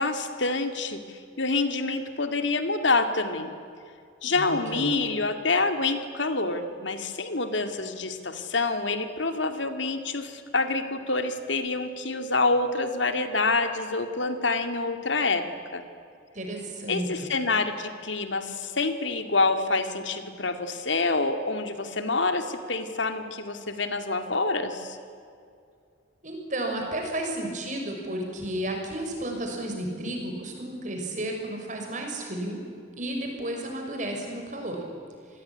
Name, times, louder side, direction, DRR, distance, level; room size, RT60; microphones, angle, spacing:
voice 1, 0.0-3.5 4.2-15.8 16.9-25.0, left 3 dB, 85° left, 8 dB, 2.3 m, -27 dB
voice 2, 4.3-5.0 16.3-17.1 26.2-32.6 33.0-34.8, right 1 dB, 40° right, 2 dB, 6.3 m, -32 dB
27.5 x 20.5 x 10.0 m, 2.3 s
head